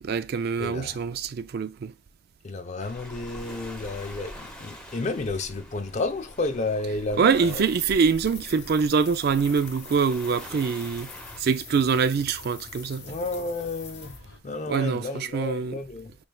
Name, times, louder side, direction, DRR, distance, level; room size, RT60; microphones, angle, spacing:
voice 1, 0.0-1.9 7.2-11.1 11.4-13.2 14.7-15.8, right 5 dB, 55° right, 0.4 m, -24 dB
voice 2, 0.6-1.0 2.4-7.6 13.0-14.2 14.4-16.1, left 2 dB, 35° left, 0.5 m, -31 dB
Waves surf, 2.8-11.4, equal, 5° left, 0.8 m, -44 dB
sound 1, 7.2-14.2, left 7 dB, 60° left, 0.9 m, -45 dB
sound 2, 9.4-14.4, left 1 dB, 85° left, 1.6 m, -51 dB
4.3 x 3.3 x 2.2 m
head